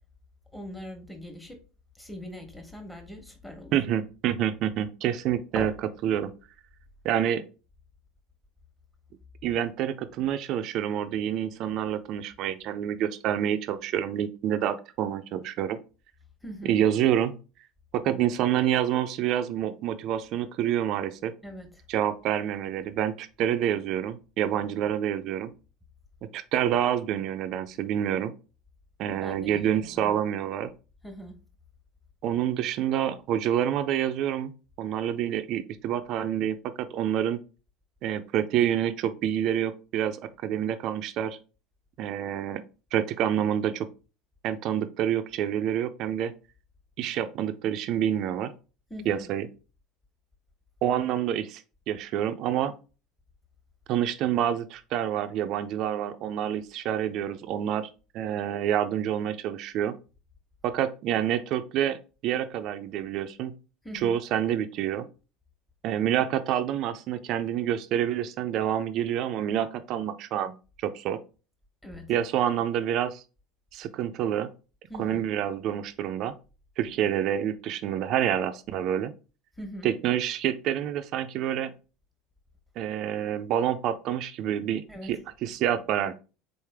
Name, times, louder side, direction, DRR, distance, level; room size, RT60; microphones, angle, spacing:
voice 1, 0.5-1.6 1.9-3.8 5.5-5.7 16.4-16.8 21.4-21.8 29.0-30.1 31.0-31.4 48.9-49.2 63.8-64.2 71.8-72.1 74.9-75.2 79.6-79.9 84.9-85.1, equal, 5° left, 1.2 m, -40 dB
voice 2, 3.7-5.7 6.0-6.3 7.0-7.4 9.4-15.8 16.6-17.3 17.9-21.3 21.9-25.5 26.3-28.3 29.0-30.7 32.2-34.5 34.8-37.4 38.0-41.4 42.0-42.6 42.9-43.9 44.4-46.3 47.0-48.5 49.1-49.5 50.8-51.6 51.9-52.7 53.9-57.9 58.1-59.9 60.6-63.5 64.0-65.0 65.8-70.5 70.8-71.2 72.1-73.2 73.7-74.5 75.0-76.3 76.8-79.1 79.8-81.7 82.8-86.2, right 10 dB, 55° right, 0.5 m, -27 dB
4.0 x 3.2 x 3.5 m
hypercardioid pair, 90°, 0 cm